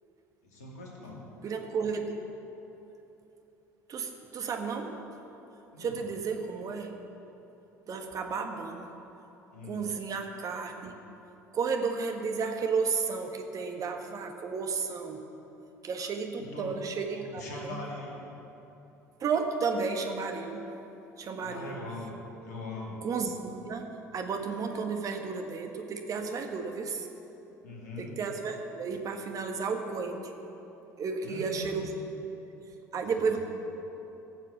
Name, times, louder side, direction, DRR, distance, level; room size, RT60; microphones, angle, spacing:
voice 1, 0.4-1.2 5.7-6.0 9.5-9.8 16.4-16.7 17.1-18.2 21.4-22.2 22.4-23.0 27.6-28.1 31.2-31.8 32.9-33.4, left 2 dB, 75° left, -2 dB, 2.5 m, -41 dB
voice 2, 1.4-2.1 3.9-5.0 5.8-7.0 7.9-8.9 9.7-10.9 11.5-15.2 15.8-17.7 19.2-20.7 21.2-21.8 23.0-27.1 28.0-30.3 31.0-31.9 32.9-33.4, right 5 dB, 40° right, 4 dB, 1.5 m, -33 dB
14.5 x 7.4 x 7.5 m, 3.0 s
figure-of-eight pair, 60°, 9 cm